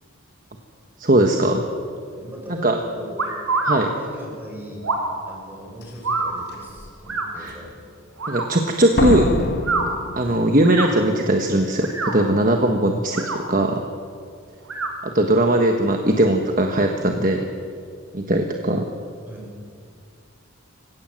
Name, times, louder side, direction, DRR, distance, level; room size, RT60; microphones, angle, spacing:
voice 1, 1.0-1.6 2.6-2.8 3.7-3.9 7.4-7.6 8.3-9.4 10.2-13.8 15.0-17.5 18.1-18.9, right 1 dB, 40° right, 3 dB, 1.3 m, -19 dB
voice 2, 2.1-3.3 3.7-5.0 5.3-7.7 10.2-10.5 16.1-16.2 19.3-19.5, equal, 10° right, -1 dB, 5.4 m, -38 dB
sound 1, 3.2-3.8 4.8-5.1 6.0-6.3 7.1-7.3 8.2-8.5 9.5-9.9 10.6-10.9 11.7-12.2 13.0-13.4 14.6-14.9, right 3 dB, 85° right, 4.2 m, -25 dB
Slam, 5.8-5.9 6.5-6.9 9.0-10.9 11.1-11.2, left 2 dB, 50° left, 1.1 m, -25 dB
26.5 x 17.0 x 7.7 m, 2.3 s
head